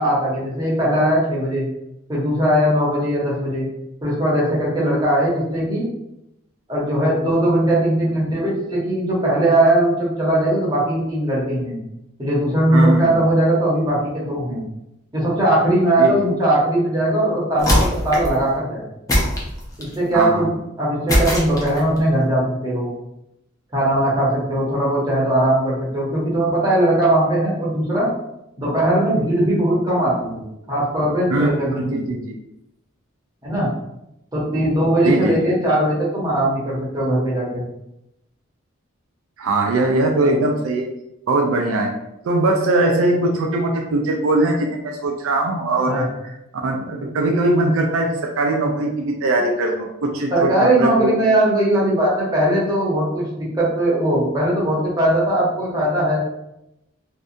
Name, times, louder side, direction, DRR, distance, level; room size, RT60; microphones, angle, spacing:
voice 1, 0.0-1.7 2.1-3.7 4.0-5.9 6.7-11.7 12.2-14.6 15.1-18.9 19.8-22.9 23.7-28.1 28.6-32.1 33.4-33.7 34.3-37.6 45.9-46.0 50.3-56.2, right 1 dB, 20° right, -6 dB, 0.7 m, -19 dB
voice 2, 12.7-13.2 16.0-16.2 20.1-20.5 31.3-32.4 35.0-35.5 39.4-40.9 41.3-41.9 42.2-46.1 46.5-51.1, right 2 dB, 75° right, 2 dB, 0.4 m, -20 dB
sound 1, 17.6-18.4 19.1-20.0 21.1-22.0, equal, 15° left, 0.5 m, -20 dB
2.6 x 2.2 x 2.5 m, 0.86 s
head